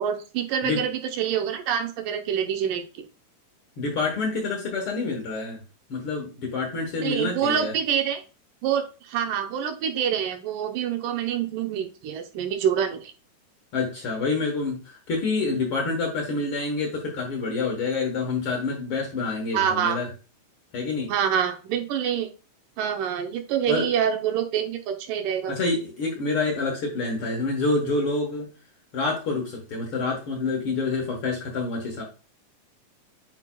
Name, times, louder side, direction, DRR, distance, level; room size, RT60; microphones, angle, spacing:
voice 1, 0.0-3.0 7.0-8.2 8.6-13.1 19.5-20.0 21.1-22.3 22.8-25.5, right 8 dB, 80° right, 6 dB, 2.4 m, -26 dB
voice 2, 3.8-5.6 5.9-7.7 13.7-20.1 20.7-21.1 23.7-23.9 25.5-28.5 28.9-32.0, left 3 dB, 55° left, 0 dB, 1.6 m, -27 dB
8.3 x 5.0 x 2.2 m, 0.33 s
omnidirectional pair, 3.8 m